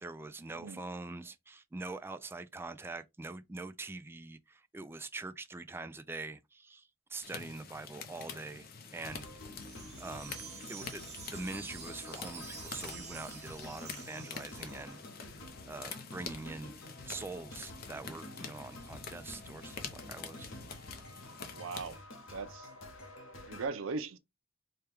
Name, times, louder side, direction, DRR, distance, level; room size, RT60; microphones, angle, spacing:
voice 1, 0.0-8.7 8.9-9.3 10.0-10.4 10.7-15.0 15.6-20.5, right 3 dB, 10° right, 0.3 m, -44 dB
sound 1, 7.2-22.0, left 5 dB, 50° left, 0.6 m, -47 dB
sound 2, 9.0-23.7, left 1 dB, 80° left, 1.0 m, -50 dB
Wind chime, 9.6-14.9, right 7 dB, 35° right, 0.7 m, -49 dB
voice 2, 21.5-22.0 22.3-22.7 23.5-24.2, right 4 dB, 85° right, 0.5 m, -38 dB
4.3 x 2.2 x 3.4 m
head